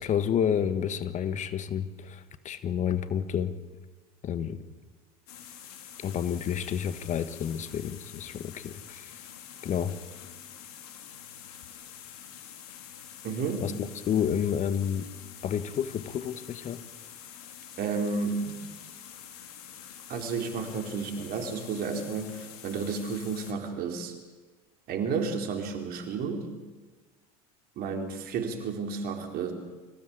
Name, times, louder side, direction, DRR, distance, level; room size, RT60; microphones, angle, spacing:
voice 1, 0.0-3.5 4.2-4.6 6.0-9.2 9.6-10.0 13.6-15.1 15.4-16.8, left 8 dB, 40° left, 13 dB, 1.5 m, -30 dB
sound 1, 5.3-23.5, left 9 dB, 75° left, 3.1 m, -47 dB
voice 2, 13.2-13.7 17.8-18.6 20.1-24.2 24.9-26.5 27.8-29.5, right 5 dB, 50° right, 5 dB, 4.2 m, -32 dB
25.5 x 16.0 x 8.8 m, 1.3 s
hypercardioid pair, 90°, 19 cm